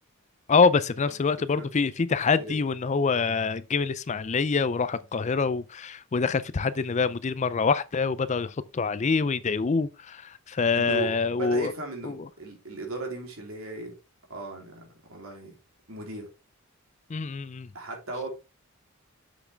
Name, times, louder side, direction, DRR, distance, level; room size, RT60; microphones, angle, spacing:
voice 1, 0.5-11.7 12.0-12.3 17.1-17.7, left 4 dB, 30° left, 0.4 m, -25 dB
voice 2, 10.7-13.9 14.3-15.5 15.9-16.3 17.7-18.3, right 2 dB, 65° right, 3.2 m, -37 dB
7.2 x 7.1 x 3.4 m
head